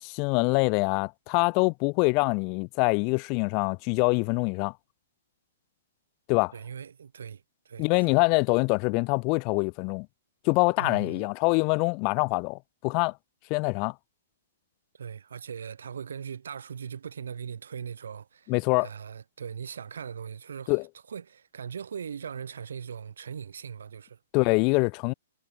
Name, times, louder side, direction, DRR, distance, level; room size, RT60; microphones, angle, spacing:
voice 1, 0.0-4.7 6.3-6.5 7.8-10.1 10.4-13.1 13.5-13.9 18.5-18.9 20.7-20.8 24.3-25.1, left 34 dB, 35° left, 0.5 m, -25 dB
voice 2, 6.5-8.2 10.8-11.3 14.9-18.5 18.8-20.8 21.1-24.2, right 7 dB, 85° right, 2.7 m, -40 dB
hypercardioid pair, 150°, 0 cm